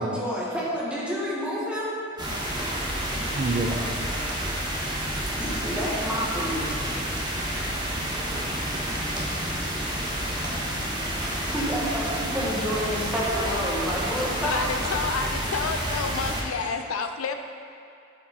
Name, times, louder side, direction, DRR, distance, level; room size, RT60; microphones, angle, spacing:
voice 1, 0.0-2.0 2.8-3.6 4.1-4.2 4.6-7.0 7.5-8.2 10.4-15.3 16.6-16.7, equal, 5° right, -7 dB, 1.3 m, -31 dB
sound 1, 2.2-16.4, equal, 20° right, 1.0 m, -29 dB
voice 2, 3.3-4.7 7.8-9.6, right 2 dB, 40° right, 2 dB, 0.4 m, -33 dB
voice 3, 14.4-17.3, left 5 dB, 85° left, 7 dB, 0.4 m, -29 dB
8.5 x 5.1 x 4.0 m, 2.5 s
head